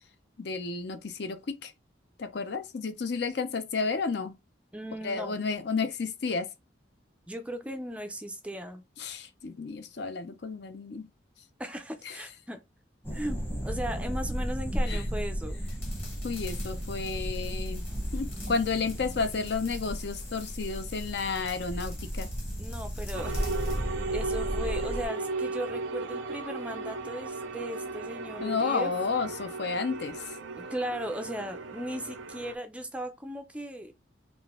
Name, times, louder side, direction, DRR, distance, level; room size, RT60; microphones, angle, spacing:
voice 1, 0.4-1.7 2.2-4.3 5.0-6.5 9.0-11.1 12.0-12.2 14.9-15.0 16.2-17.9 18.1-22.3 28.4-30.4, left 4 dB, 55° left, 0.5 m, -32 dB
voice 2, 4.7-5.4 7.3-8.8 11.6-12.6 13.1-15.8 22.6-23.4 24.1-28.9 30.6-33.9, equal, 5° right, 0.4 m, -37 dB
sound 1, 13.0-25.1, equal, 10° left, 1.0 m, -34 dB
sound 2, 15.7-23.9, left 4 dB, 30° left, 1.4 m, -49 dB
sound 3, 23.1-32.5, right 3 dB, 75° right, 0.5 m, -36 dB
3.8 x 2.5 x 3.5 m
head